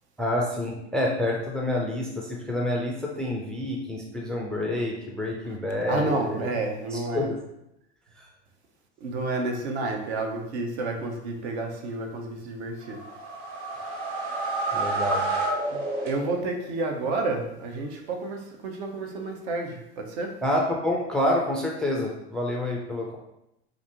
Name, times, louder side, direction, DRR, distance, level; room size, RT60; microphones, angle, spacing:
voice 1, 0.2-6.5 6.9-7.4 8.2-8.3 14.7-15.2 20.4-23.2, left 1 dB, ahead, -1 dB, 0.3 m, -28 dB
voice 2, 5.9-7.3 9.0-13.0 15.7-20.3, right 2 dB, 65° right, 3 dB, 0.9 m, -30 dB
sound 1, 12.8-16.6, right 2 dB, 50° right, 1.3 m, -29 dB
4.3 x 2.5 x 2.9 m, 0.85 s
hypercardioid pair, 100°, 34 cm